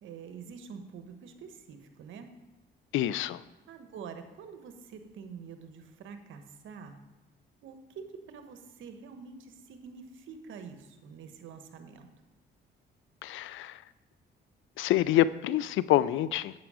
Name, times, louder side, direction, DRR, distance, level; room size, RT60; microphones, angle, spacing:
voice 1, 0.0-2.3 3.7-7.0 7.6-12.1, right 6 dB, 80° right, 7 dB, 1.1 m, -46 dB
voice 2, 2.9-3.4 13.2-13.8 14.8-16.5, left 13 dB, 80° left, 17 dB, 0.4 m, -26 dB
9.4 x 7.9 x 4.9 m, 1.1 s
cardioid pair, 90°, 20 cm